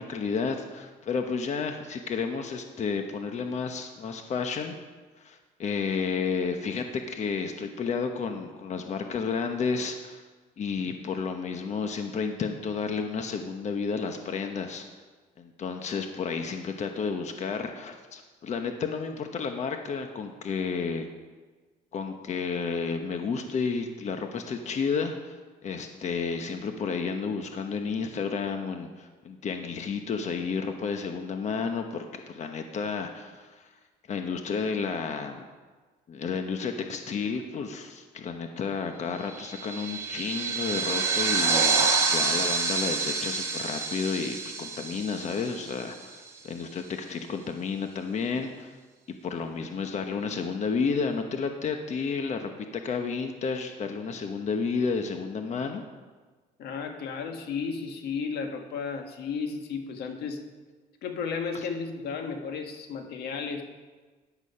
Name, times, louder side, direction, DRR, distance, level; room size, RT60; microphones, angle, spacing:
voice 1, 0.0-4.8 5.2-10.2 10.6-14.9 15.4-21.0 21.9-25.3 25.6-33.7 34.1-35.5 36.1-48.8 49.1-52.5 52.8-55.8 61.5-61.6, left 5 dB, 45° left, 5 dB, 1.1 m, -31 dB
sound 1, 39.3-46.1, right 4 dB, 15° right, 3.6 m, -28 dB
voice 2, 56.6-60.4 61.0-63.6, left 5 dB, 75° left, 5 dB, 1.7 m, -33 dB
14.0 x 10.5 x 5.7 m, 1.3 s
cardioid pair, 110°, 17 cm